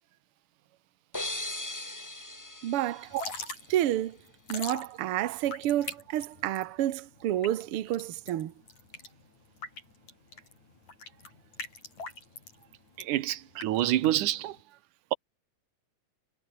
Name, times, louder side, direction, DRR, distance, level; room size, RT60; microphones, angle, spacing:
sound 1, 1.1-3.9, left 1 dB, 15° left, 0.7 m, -39 dB
voice 1, 2.6-3.1 3.7-4.2 4.5-8.5, right 12 dB, 60° right, 1.7 m, -29 dB
Drip / Trickle dribble, 3.0-14.6, left 3 dB, 65° left, 9.2 m, -43 dB
voice 2, 13.0-14.6, right 14 dB, 90° right, 2.6 m, -27 dB
omnidirectional pair, 3.5 m